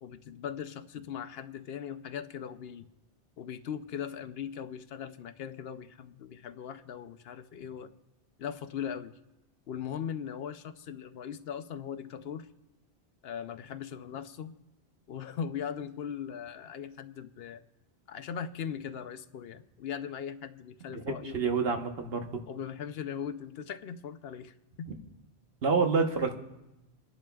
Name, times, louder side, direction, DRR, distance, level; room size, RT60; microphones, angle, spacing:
voice 1, 0.0-2.9 3.4-7.9 8.4-9.1 9.7-12.5 13.2-14.6 15.1-17.6 18.1-21.4 22.5-24.9, left 8 dB, 70° left, 9 dB, 0.8 m, -39 dB
voice 2, 20.9-22.3 25.6-26.4, right 4 dB, 70° right, 4 dB, 1.2 m, -28 dB
27.5 x 10.5 x 2.3 m, 0.97 s
omnidirectional pair, 1.1 m